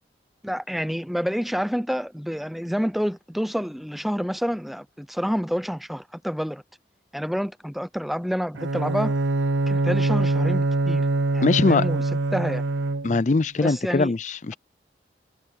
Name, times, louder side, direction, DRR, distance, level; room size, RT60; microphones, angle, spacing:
voice 1, 0.4-6.6 7.1-9.2 9.7-11.1 11.3-12.0 12.3-12.6 13.6-14.1, equal, ahead, 0.7 m, -28 dB
Bowed string instrument, 8.5-13.4, right 2 dB, 90° right, 0.7 m, -24 dB
voice 2, 11.4-11.8 13.0-14.5, left 3 dB, 40° left, 0.5 m, -21 dB
head